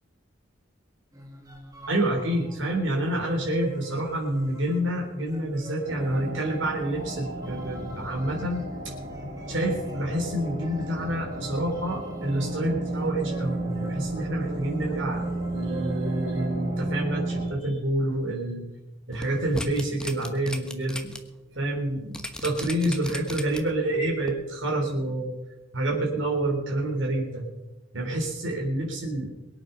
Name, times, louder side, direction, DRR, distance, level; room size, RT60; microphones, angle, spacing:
sound 1, 1.1-17.2, equal, 20° right, 2.3 m, -45 dB
voice 1, 1.9-8.7 9.5-18.7 19.1-21.1 21.5-25.3 25.7-27.5 27.9-29.3, right 1 dB, 70° right, -1 dB, 3.8 m, -28 dB
sound 2, 5.9-17.5, right 2 dB, 45° right, 2.1 m, -33 dB
sound 3, 19.1-21.2 21.6-21.7 22.1-23.8 24.2-24.3, left 1 dB, 5° left, 1.1 m, -36 dB
22.5 x 8.7 x 5.8 m, 1.0 s
head